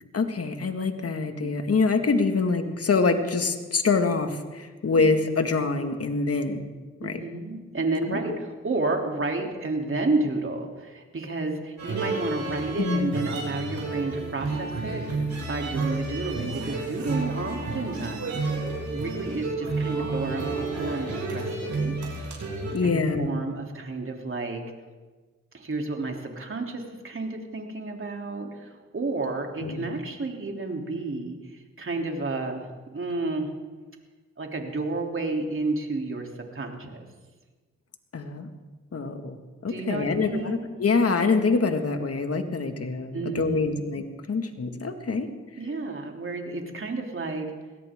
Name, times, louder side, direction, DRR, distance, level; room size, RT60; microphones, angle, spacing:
voice 1, 0.1-6.7 7.0-7.2 8.1-8.4 12.8-13.3 22.7-23.4 29.6-29.9 38.1-38.5 38.9-39.4 39.6-45.3, left 4 dB, 50° left, 6 dB, 2.0 m, -25 dB
voice 2, 7.0-18.4 18.9-21.9 22.8-24.6 25.5-33.5 34.4-37.1 39.7-40.7 43.1-43.8 45.6-47.5, right 3 dB, 45° right, 2 dB, 3.3 m, -31 dB
sound 1, 11.8-22.7, right 3 dB, 65° right, 6.5 m, -31 dB
22.0 x 17.0 x 3.8 m, 1.3 s
supercardioid pair, 45°, 30 cm